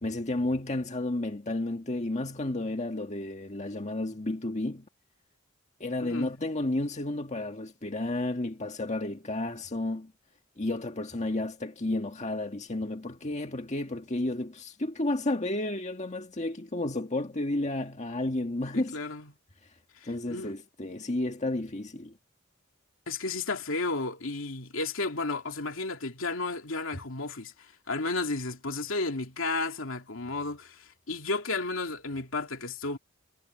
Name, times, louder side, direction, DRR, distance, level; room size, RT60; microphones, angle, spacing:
voice 1, 0.0-4.8 5.8-10.1 10.6-19.0 20.0-22.2, left 2 dB, 35° left, 1.7 m, -32 dB
voice 2, 6.0-6.3 18.7-19.3 20.0-20.5 23.1-33.0, left 3 dB, 75° left, 2.8 m, -33 dB
head